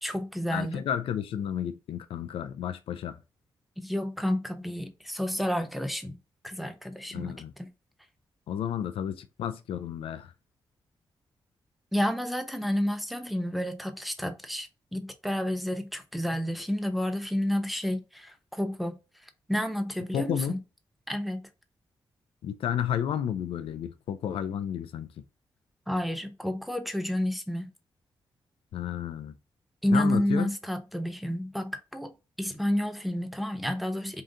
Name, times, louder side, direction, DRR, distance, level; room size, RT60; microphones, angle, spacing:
voice 1, 0.0-0.8 3.8-6.2 6.4-7.7 11.9-18.9 19.2-20.6 21.1-21.5 25.9-27.7 29.8-34.2, equal, ahead, 0.8 m, -30 dB
voice 2, 0.5-3.2 7.1-7.5 8.5-10.3 20.1-20.5 22.4-25.1 28.7-29.3 29.9-30.5, left 9 dB, 80° left, 0.4 m, -32 dB
3.8 x 2.5 x 3.7 m
supercardioid pair, 50°, 9 cm